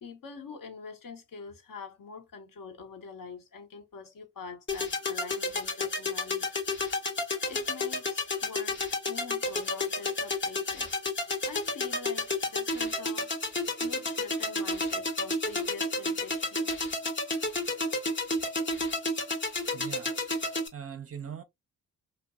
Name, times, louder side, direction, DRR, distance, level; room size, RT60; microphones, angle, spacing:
voice 1, 0.0-6.5 7.5-10.9 11.4-17.2, left 5 dB, 50° left, 0.9 m, -45 dB
sound 1, 4.7-20.7, left 2 dB, 30° left, 0.8 m, -31 dB
voice 2, 19.7-20.1 20.7-21.4, right 8 dB, 35° right, 0.5 m, -40 dB
2.6 x 2.1 x 2.3 m
supercardioid pair, 45°, 41 cm